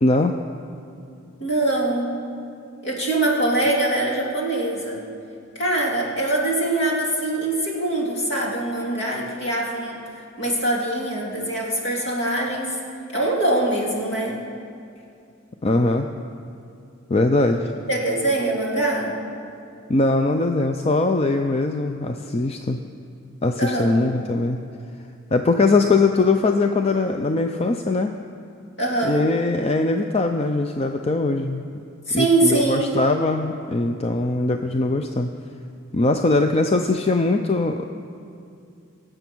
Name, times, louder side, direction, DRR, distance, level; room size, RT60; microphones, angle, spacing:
voice 1, 0.0-0.3 15.6-16.1 17.1-17.7 19.9-22.8 23.4-24.6 25.3-28.1 29.0-31.6 32.1-35.3 35.9-37.8, left 3 dB, 30° left, 5 dB, 0.4 m, -21 dB
voice 2, 1.4-2.1 2.8-5.0 5.5-10.0 10.4-12.8 13.1-14.4 17.9-19.1 23.6-24.0 28.8-29.2 32.1-32.9, right 2 dB, 60° left, -3 dB, 2.9 m, -23 dB
23.5 x 7.9 x 6.1 m, 2.5 s
head